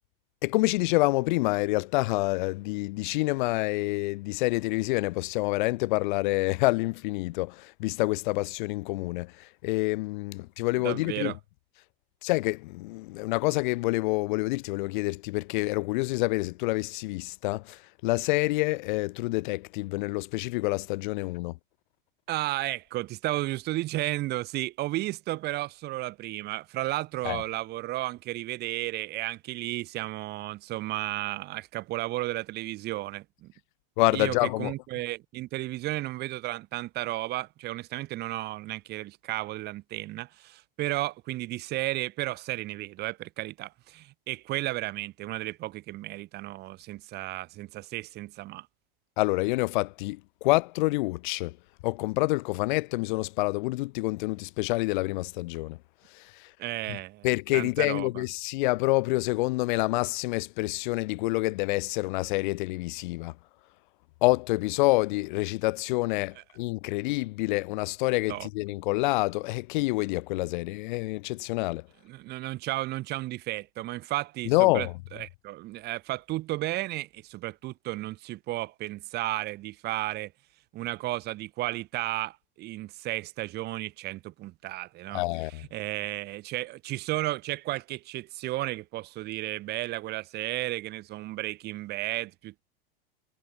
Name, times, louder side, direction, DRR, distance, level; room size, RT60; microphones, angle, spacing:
voice 1, 0.4-11.3 12.2-21.5 27.2-27.4 34.0-34.7 49.2-51.5 51.8-55.8 56.1-56.5 57.2-63.3 64.2-71.8 74.5-74.9 85.1-85.6, left 22 dB, 55° left, 1.5 m, -27 dB
voice 2, 10.8-11.4 22.3-33.5 34.1-48.7 56.6-58.2 66.4-66.5 68.3-68.5 72.0-80.3 80.7-92.6, right 17 dB, 35° right, 7.6 m, -33 dB
supercardioid pair, 160°, 29 cm